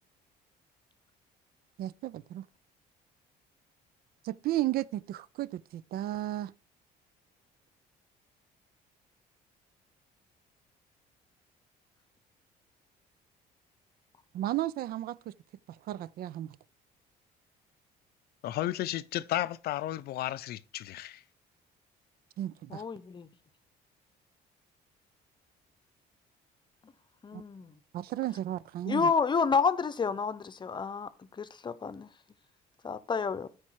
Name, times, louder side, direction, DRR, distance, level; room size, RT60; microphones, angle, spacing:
voice 1, 1.8-2.5 4.2-6.5 14.3-15.4 15.7-16.6 22.4-22.8 27.3-27.4 27.9-29.1, right 14 dB, 65° right, 0.5 m, -34 dB
voice 2, 18.4-21.2, left 14 dB, 65° left, 0.5 m, -33 dB
voice 3, 22.7-23.3 27.2-27.7 28.9-32.1 32.8-33.5, left 5 dB, 25° left, 0.7 m, -30 dB
13.0 x 4.7 x 4.7 m
cardioid pair, 110°, 17 cm